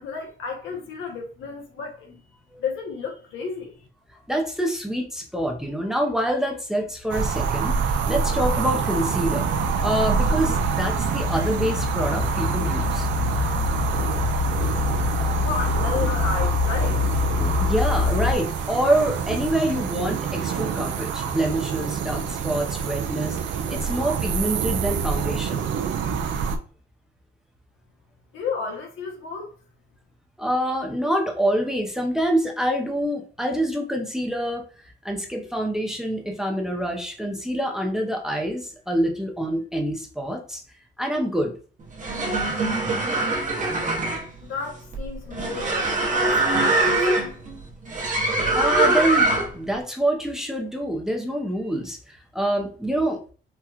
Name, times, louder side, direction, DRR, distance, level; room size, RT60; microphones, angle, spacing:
voice 1, 0.0-2.2 2.6-3.7 15.4-17.0 28.3-29.5 44.4-45.7 46.1-47.3, left 5 dB, 85° left, 0.9 m, -32 dB
voice 2, 4.3-9.5 9.8-13.1 17.4-25.7 30.4-34.7 35.0-40.6 41.0-41.5 48.5-53.2, right 1 dB, ahead, 0.6 m, -26 dB
sound 1, 7.1-26.6, right 6 dB, 70° right, 0.5 m, -26 dB
sound 2, 7.5-18.4, left 5 dB, 45° left, 1.3 m, -27 dB
sound 3, 41.8-49.7, right 2 dB, 40° right, 1.0 m, -23 dB
4.4 x 2.3 x 2.4 m
cardioid pair, 90°, 20 cm